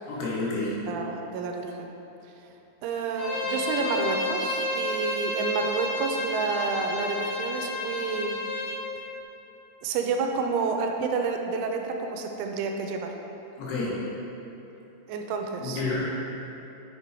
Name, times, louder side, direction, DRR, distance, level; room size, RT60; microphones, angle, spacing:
voice 1, 0.1-0.7 13.6-13.9 15.6-16.0, left 3 dB, 70° left, -5 dB, 2.8 m, -29 dB
voice 2, 0.9-1.9 2.8-8.4 9.8-13.1 15.1-15.8, right 4 dB, 90° right, 3 dB, 3.1 m, -29 dB
Bowed string instrument, 3.2-8.8, left 2 dB, 90° left, 1.9 m, -30 dB
9.2 x 6.0 x 4.4 m, 3.0 s
omnidirectional pair, 5.4 m